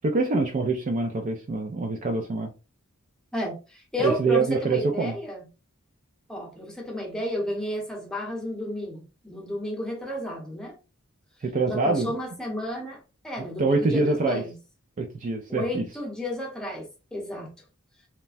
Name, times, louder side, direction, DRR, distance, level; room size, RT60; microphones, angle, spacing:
voice 1, 0.0-2.5 4.0-5.2 11.4-12.1 13.6-14.4 15.0-15.8, right 3 dB, 35° right, 0.3 m, -25 dB
voice 2, 3.3-5.5 6.3-10.8 11.7-14.6 15.5-17.6, equal, 5° left, 0.8 m, -32 dB
3.1 x 2.1 x 2.4 m
head